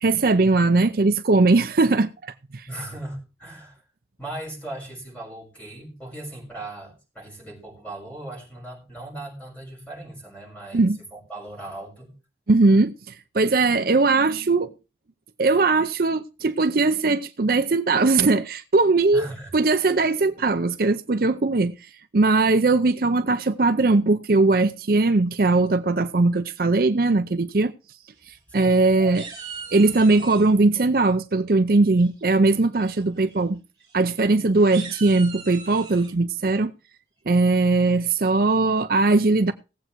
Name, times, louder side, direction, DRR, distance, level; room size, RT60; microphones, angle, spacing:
voice 1, 0.0-2.7 10.7-11.0 12.5-14.7 15.4-19.3 19.5-21.7 22.1-27.7 28.3-29.3 29.7-33.6 33.9-36.7 37.3-39.5, right 3 dB, 50° right, 0.6 m, -20 dB
voice 2, 2.7-3.8 4.2-12.1 19.1-19.5 28.5-29.3 30.2-30.3, right 1 dB, 10° left, 6.3 m, -38 dB
sound 1, 28.2-28.8 29.1-30.5 32.0-32.4 32.8-33.0 33.3-33.4 33.8-33.9 34.5-36.1, right 6 dB, 20° right, 3.2 m, -40 dB
17.5 x 7.9 x 4.5 m
head